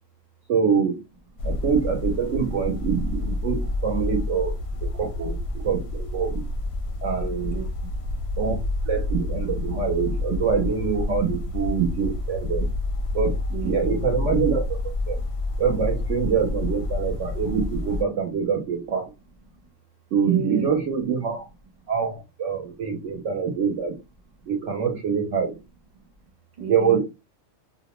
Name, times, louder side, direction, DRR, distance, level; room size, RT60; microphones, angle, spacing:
voice 1, 0.5-1.0 1.4-4.5 5.0-6.4 7.0-7.6 8.4-8.6 8.8-12.7 13.1-13.4 13.6-15.2 15.6-19.1 20.1-21.5 21.9-23.9 24.5-25.6 26.7-27.0, right 6 dB, 65° right, 0.9 m, -25 dB
sound 1, 1.4-18.0, left 2 dB, 65° left, 0.7 m, -28 dB
voice 2, 7.4-8.2 10.0-10.1 13.1-13.2 13.5-14.0 15.1-15.3 19.5-19.7 20.2-20.7 21.8-21.9 22.6-22.8 24.4-24.5 25.9-26.3 26.6-27.0, right 6 dB, 35° right, 0.8 m, -37 dB
2.4 x 2.1 x 2.9 m
omnidirectional pair, 1.4 m